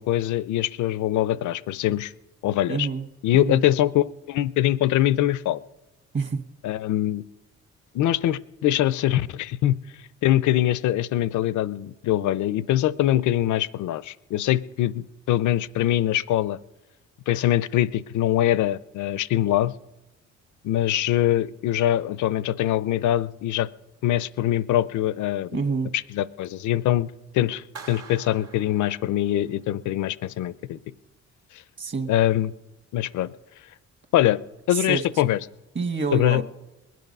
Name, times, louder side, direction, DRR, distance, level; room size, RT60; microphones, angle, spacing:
voice 1, 0.0-2.1 2.4-2.9 3.2-5.6 6.6-7.2 7.9-9.8 10.2-16.6 17.3-19.7 20.6-23.7 24.0-25.5 25.9-30.8 32.1-32.5 32.9-33.3 34.1-34.4 34.7-35.4 36.1-36.4, left 13 dB, 75° left, 18 dB, 0.6 m, -23 dB
voice 2, 2.7-3.1 3.3-3.6 6.1-6.4 25.5-25.9 31.8-32.1 34.7-35.0 35.7-36.4, right 4 dB, 40° right, 8 dB, 1.5 m, -27 dB
Clapping, 27.7-29.6, right 4 dB, 60° right, 1.7 m, -45 dB
20.5 x 9.3 x 5.4 m, 1.1 s
cardioid pair, 90°, 30 cm